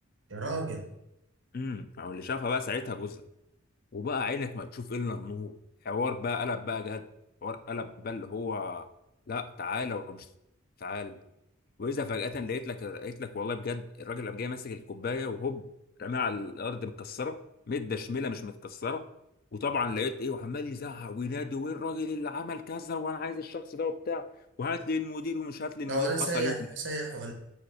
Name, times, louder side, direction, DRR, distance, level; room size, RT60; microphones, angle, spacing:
voice 1, 0.3-0.9 25.9-27.3, right 2 dB, 60° right, 3 dB, 1.1 m, -32 dB
voice 2, 1.5-3.2 3.9-5.6 5.8-7.0 7.4-8.9 9.3-10.3 10.8-11.2 11.8-15.6 16.0-17.4 17.7-19.0 19.5-24.3 24.6-26.5, left 4 dB, 45° left, 10 dB, 0.4 m, -33 dB
5.0 x 4.1 x 4.7 m, 0.86 s
head